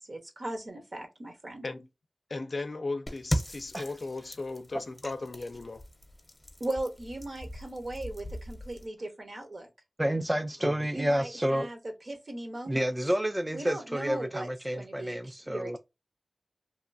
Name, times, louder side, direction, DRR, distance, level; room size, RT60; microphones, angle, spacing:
voice 1, 0.1-1.7 6.6-9.7 10.9-11.8 12.1-12.8 13.5-15.8, right 1 dB, 65° right, 1.0 m, -38 dB
voice 2, 2.3-5.8 10.6-10.9, left 3 dB, 70° left, 0.4 m, -36 dB
sound 1, 3.1-8.9, equal, 30° left, 0.7 m, -38 dB
voice 3, 10.0-11.7 12.7-15.8, equal, 15° right, 0.3 m, -29 dB
2.9 x 2.3 x 2.5 m
wide cardioid pair, 50°, 0 cm